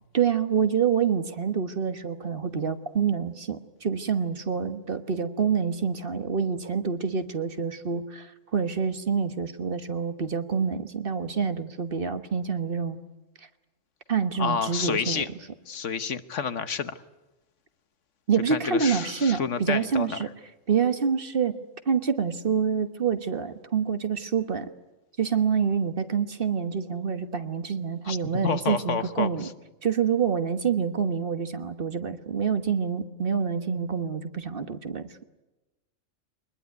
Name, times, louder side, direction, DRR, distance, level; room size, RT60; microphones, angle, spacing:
voice 1, 0.1-13.0 14.1-15.3 18.3-20.3 20.7-21.6 21.8-24.7 25.2-29.5 29.8-35.2, right 6 dB, 45° right, 10 dB, 1.4 m, -27 dB
voice 2, 14.4-15.3 15.7-16.9 18.5-20.2 28.0-28.2 28.4-29.5, left 6 dB, 70° left, 12 dB, 1.4 m, -29 dB
23.5 x 21.0 x 9.4 m, 1.0 s
omnidirectional pair, 1.3 m